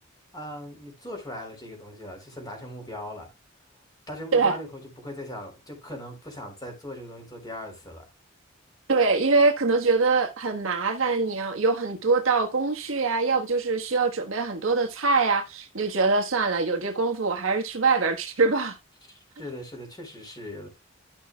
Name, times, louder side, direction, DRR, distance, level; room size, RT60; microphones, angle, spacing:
voice 1, 0.3-3.3 4.1-8.1 19.4-20.7, left 1 dB, 20° left, 3.6 m, -39 dB
voice 2, 8.9-18.8, right 4 dB, 80° right, 1.3 m, -23 dB
12.0 x 6.1 x 2.3 m
head